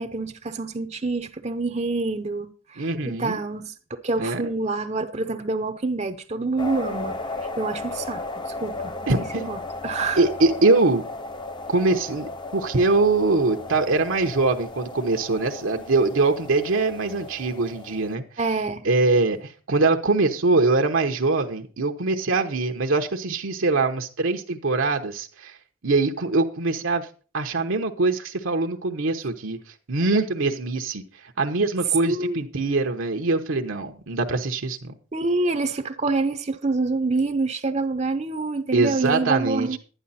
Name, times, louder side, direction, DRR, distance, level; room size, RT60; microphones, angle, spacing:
voice 1, 0.0-8.9 9.3-10.2 18.4-18.9 32.0-32.4 35.1-39.8, right 3 dB, 30° right, 0.6 m, -27 dB
voice 2, 2.8-3.4 4.2-4.5 9.1-9.5 10.2-11.0 11.7-18.2 18.8-25.6 25.8-27.1 27.3-29.6 29.9-31.0 31.4-34.9 38.7-39.8, right 3 dB, 75° right, 1.0 m, -23 dB
sound 1, 6.6-18.2, left 2 dB, 20° left, 0.6 m, -35 dB
11.5 x 10.0 x 4.2 m
head